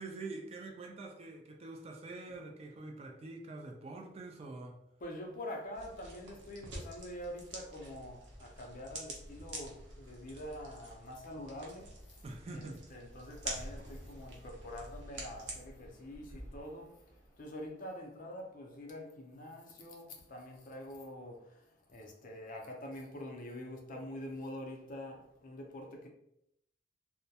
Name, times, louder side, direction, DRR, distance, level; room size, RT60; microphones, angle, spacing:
voice 1, 0.0-4.8 12.2-12.8, right 2 dB, 35° right, 0.3 m, -45 dB
voice 2, 5.0-11.9 12.5-17.0 17.4-21.6 21.9-26.1, left 1 dB, 45° left, 0.5 m, -45 dB
sound 1, 5.7-15.5, right 2 dB, 80° right, 0.6 m, -47 dB
sound 2, 13.1-18.0, equal, 15° left, 0.8 m, -55 dB
2.2 x 2.1 x 2.7 m
head